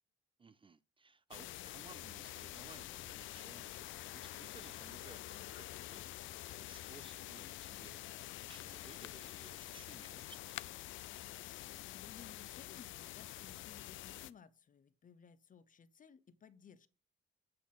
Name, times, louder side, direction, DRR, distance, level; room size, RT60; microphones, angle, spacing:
voice 1, 0.4-6.1 6.7-8.1 8.3-10.7, right 4 dB, 25° right, 0.4 m, -59 dB
sound 1, 1.3-14.3, left 15 dB, 80° left, 0.4 m, -47 dB
voice 2, 11.4-16.9, left 7 dB, 45° left, 0.7 m, -59 dB
8.6 x 4.1 x 5.5 m
cardioid pair, 90°, 20 cm